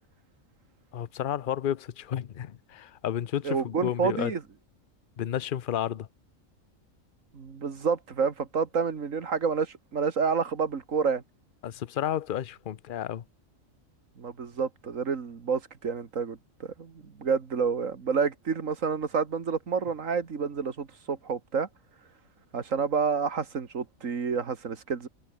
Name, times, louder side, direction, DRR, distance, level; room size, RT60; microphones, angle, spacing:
voice 1, 0.9-4.3 5.2-6.1 11.6-13.2, left 10 dB, 50° left, 0.7 m, -31 dB
voice 2, 3.4-4.4 7.3-11.2 14.2-21.7 22.5-25.1, right 5 dB, 70° right, 2.1 m, -29 dB
omnidirectional pair, 1.4 m